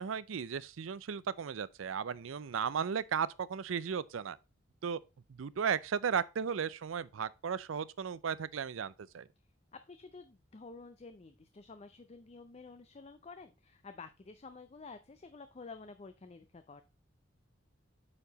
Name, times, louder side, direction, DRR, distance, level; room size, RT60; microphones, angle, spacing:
voice 1, 0.0-4.4 4.8-5.0 5.3-9.3, right 7 dB, 85° right, 0.5 m, -35 dB
voice 2, 9.7-16.8, left 4 dB, 30° left, 0.5 m, -51 dB
8.6 x 4.7 x 4.0 m
head